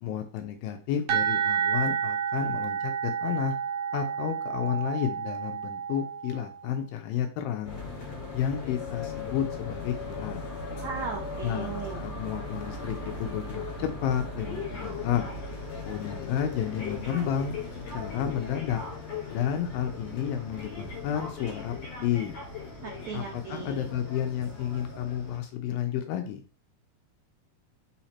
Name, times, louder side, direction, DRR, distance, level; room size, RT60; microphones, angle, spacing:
voice 1, 0.0-3.5 3.9-7.8 8.3-10.4 11.4-15.3 15.9-17.6 17.9-18.8 19.3-21.8 22.0-22.4 23.1-26.4, left 9 dB, 80° left, 6 dB, 2.2 m, -31 dB
sound 1, 1.1-6.7, right 8 dB, 60° right, 2.0 m, -30 dB
sound 2, 7.6-25.4, left 3 dB, 45° left, 3.3 m, -38 dB
voice 2, 10.8-12.0 22.8-23.9, right 5 dB, 85° right, 1 dB, 1.6 m, -37 dB
5.7 x 4.4 x 4.2 m, 0.38 s
omnidirectional pair, 4.6 m